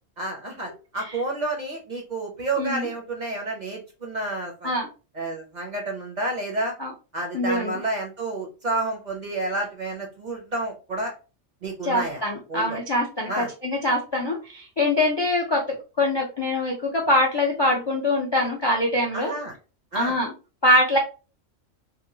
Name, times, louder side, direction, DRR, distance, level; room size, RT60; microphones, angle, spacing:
voice 1, 0.2-4.7 5.1-6.7 7.1-11.1 11.6-12.2 12.5-12.8 13.3-13.5 19.1-19.5 19.9-20.2, right 2 dB, 45° right, 1 dB, 0.7 m, -30 dB
voice 2, 2.6-2.9 4.6-4.9 6.8-6.9 7.3-7.7 11.8-19.3 19.9-20.3 20.6-21.0, left 1 dB, 40° left, -1 dB, 0.4 m, -23 dB
2.9 x 2.6 x 2.6 m, 0.32 s
omnidirectional pair, 1.3 m